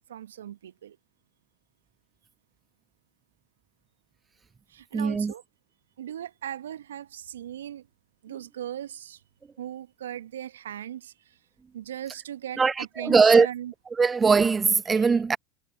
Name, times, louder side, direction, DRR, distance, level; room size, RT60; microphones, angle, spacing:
voice 1, 0.1-1.0 4.7-5.4 6.0-7.9 8.2-9.2 9.6-11.1 11.7-13.7 15.0-15.1, right 11 dB, 75° right, 1.1 m, -38 dB
voice 2, 4.9-5.3 12.6-13.5 13.9-15.4, right 5 dB, 20° right, 0.4 m, -20 dB
hypercardioid pair, 80°, 0 cm